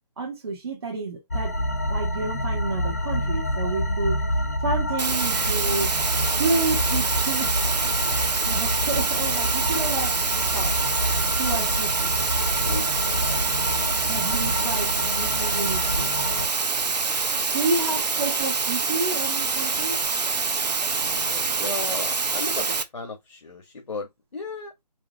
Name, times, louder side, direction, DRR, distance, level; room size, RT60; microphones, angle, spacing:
voice 1, 0.2-1.6 1.9-4.2 4.6-5.9 6.4-7.5 8.0-10.2 10.5-10.7 11.3-12.1 14.1-16.1 17.5-20.0, right 3 dB, 40° right, 1.3 m, -30 dB
sound 1, 1.3-16.5, equal, 25° left, 0.5 m, -27 dB
sound 2, 5.0-22.8, right 4 dB, 75° right, 0.9 m, -26 dB
voice 2, 12.4-14.1 17.9-18.0 21.0-24.8, left 3 dB, 60° left, 1.5 m, -36 dB
sound 3, 16.7-22.1, left 1 dB, ahead, 1.1 m, -47 dB
4.9 x 2.6 x 2.8 m
figure-of-eight pair, 170°, 21 cm